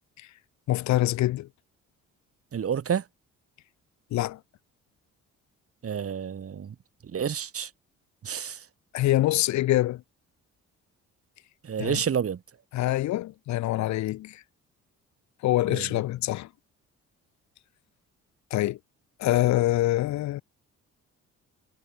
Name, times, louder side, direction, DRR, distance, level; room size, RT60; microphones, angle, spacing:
voice 1, 0.7-1.5 4.1-4.4 8.9-10.0 11.8-11.9 12.7-14.4 15.4-16.5 18.5-18.8 19.2-20.4, left 15 dB, 65° left, 0.6 m, -25 dB
voice 2, 2.5-3.1 5.8-6.8 7.0-7.7 8.2-8.7 11.6-12.4 15.7-16.0, right 8 dB, 50° right, 3.0 m, -30 dB
cardioid pair, 90°, 30 cm